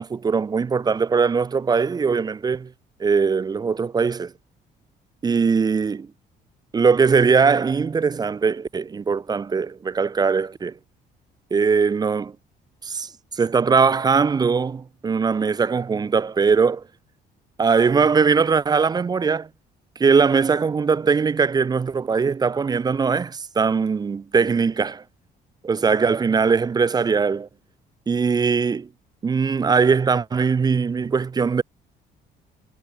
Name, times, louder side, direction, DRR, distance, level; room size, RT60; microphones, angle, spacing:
voice 1, 0.0-2.7 3.0-4.3 5.2-6.1 6.7-10.7 11.5-12.3 12.8-13.1 13.4-16.8 17.6-19.5 20.0-25.0 25.6-27.5 28.1-28.9 29.2-31.6, right 5 dB, 20° right, 0.3 m, -20 dB
cardioid pair, 80°, 19 cm